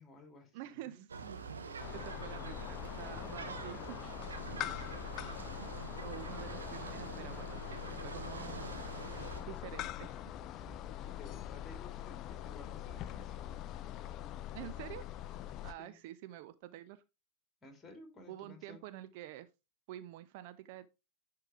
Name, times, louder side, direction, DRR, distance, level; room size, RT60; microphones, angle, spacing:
voice 1, 0.0-1.0 4.2-5.3 10.5-10.8 11.0-13.5 15.6-16.0 17.6-18.9, left 2 dB, 15° left, 2.4 m, -55 dB
voice 2, 0.5-1.5 1.9-4.1 6.0-8.7 9.4-10.2 14.5-15.0 15.6-17.0 18.3-19.5 19.9-20.9, right 13 dB, 50° right, 0.5 m, -48 dB
sound 1, 1.1-9.4, right 4 dB, 70° right, 1.0 m, -46 dB
sound 2, 1.8-15.7, left 12 dB, 35° left, 0.4 m, -43 dB
10.5 x 3.8 x 3.1 m
figure-of-eight pair, 90°, 0 cm